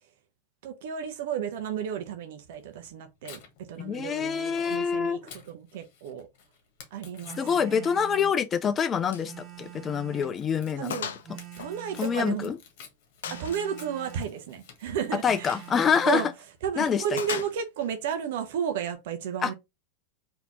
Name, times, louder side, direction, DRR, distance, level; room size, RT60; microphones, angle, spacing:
voice 1, 0.6-3.4 3.7-5.2 5.5-6.3 6.9-7.9 10.8-11.1 11.6-12.5 13.3-15.6 16.1-16.3 16.6-19.5, right 8 dB, 65° right, 0.8 m, -33 dB
Tearing, 2.5-16.0, left 7 dB, 60° left, 1.3 m, -53 dB
voice 2, 3.8-5.2 7.4-9.3 9.6-11.0 12.0-12.5 15.2-16.2 16.8-17.0 19.4-19.5, left 7 dB, 30° left, 0.6 m, -26 dB
Telephone, 7.2-8.4 9.2-10.4 11.2-12.4 13.2-14.4 15.2-16.4, right 10 dB, 30° right, 1.8 m, -45 dB
Gunshot gunfire, 9.1-9.3 9.7-9.8 10.2-10.3 10.9-11.3 11.6-12.6 13.2-13.7 15.4-15.7 17.2-17.9, left 8 dB, 75° left, 0.5 m, -37 dB
4.1 x 3.0 x 2.9 m
hypercardioid pair, 100°, 0 cm